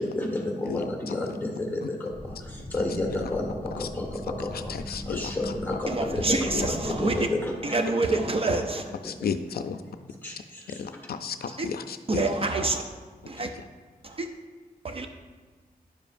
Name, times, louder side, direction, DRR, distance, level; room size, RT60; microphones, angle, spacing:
voice 1, 0.0-7.7 8.1-8.2 9.0-9.3 10.2-10.8 11.5-11.6 13.4-13.5, left 2 dB, 10° left, -1 dB, 1.5 m, -31 dB
voice 2, 0.7-1.2 1.8-1.9 3.1-3.3 3.7-3.9 4.4-5.6 6.5-6.6 8.5-8.6 9.0-9.8 10.7-12.2 13.5-13.6, left 6 dB, 90° left, 9 dB, 0.4 m, -34 dB
sound 1, 2.1-7.2, equal, 10° right, 2.0 m, -39 dB
voice 3, 5.9-7.3 7.6-8.9 11.6-11.7 12.1-12.8 13.3-13.5 14.0-14.3 14.8-15.1, right 3 dB, 40° right, 5 dB, 0.5 m, -27 dB
10.5 x 7.0 x 2.6 m, 1.4 s
wide cardioid pair, 150°, 16 cm